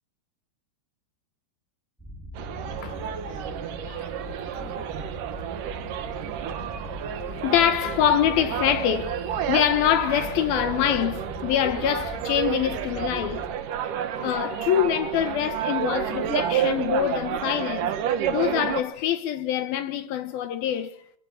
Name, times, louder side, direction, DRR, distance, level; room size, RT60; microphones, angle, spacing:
sound 1, 2.0-13.5, left 2 dB, ahead, 7.3 m, -41 dB
sound 2, 2.4-18.8, right 9 dB, 60° right, 2.5 m, -30 dB
voice 1, 7.1-9.2 9.5-13.5 14.2-18.0 18.3-21.0, left 10 dB, 70° left, 2.7 m, -25 dB
28.0 x 22.0 x 6.1 m
omnidirectional pair, 5.1 m